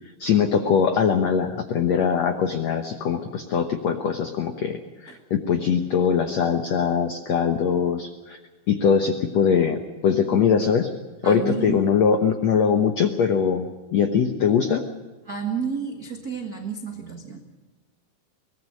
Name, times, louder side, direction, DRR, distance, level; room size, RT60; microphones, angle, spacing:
voice 1, 0.2-8.4 8.7-10.9 11.2-14.8, left 7 dB, 75° left, 6 dB, 1.5 m, -22 dB
voice 2, 11.2-11.9 15.2-17.4, right 6 dB, 70° right, 3 dB, 0.8 m, -31 dB
23.5 x 19.0 x 6.4 m, 1.3 s
omnidirectional pair, 4.7 m